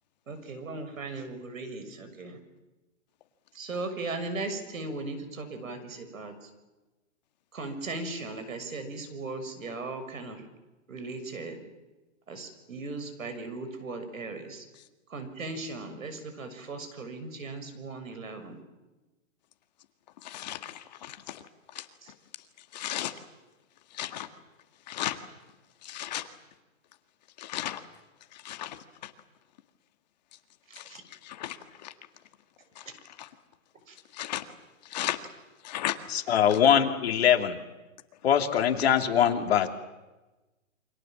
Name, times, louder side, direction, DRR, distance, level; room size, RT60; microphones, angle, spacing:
voice 1, 0.3-2.4 3.5-6.5 7.5-10.4 10.9-11.6 12.3-14.6 15.1-18.6 22.0-22.1 30.7-31.0 33.9-34.0, right 3 dB, 85° right, 9 dB, 6.6 m, -38 dB
voice 2, 20.2-21.4 21.7-21.8 22.7-23.1 24.0-24.3 24.9-25.2 25.8-26.2 27.4-27.8 28.4-28.8 29.0-29.1 30.8-30.9 31.2-31.6 31.8-31.9 33.2-33.3 34.2-34.4 34.9-35.2 35.6-35.9, left 13 dB, 30° left, 8 dB, 1.7 m, -34 dB
voice 3, 36.1-37.6 38.2-39.7, left 9 dB, 50° left, 5 dB, 2.9 m, -22 dB
28.5 x 25.5 x 7.5 m, 1.1 s
hypercardioid pair, 165°, 39 cm